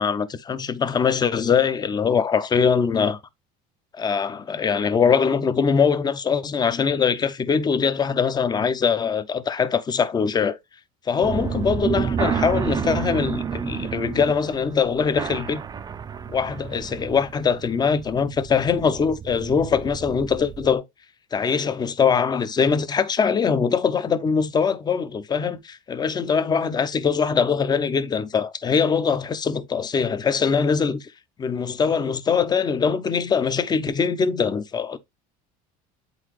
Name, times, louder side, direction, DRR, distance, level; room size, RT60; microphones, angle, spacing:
voice 1, 0.0-3.2 4.0-10.6 11.1-15.6 16.3-20.8 21.3-31.1 31.4-35.0, left 6 dB, 25° left, 0.6 m, -22 dB
sound 1, 11.2-20.7, right 7 dB, 20° right, 0.5 m, -30 dB
8.1 x 4.0 x 3.1 m
cardioid pair, 125°, 18 cm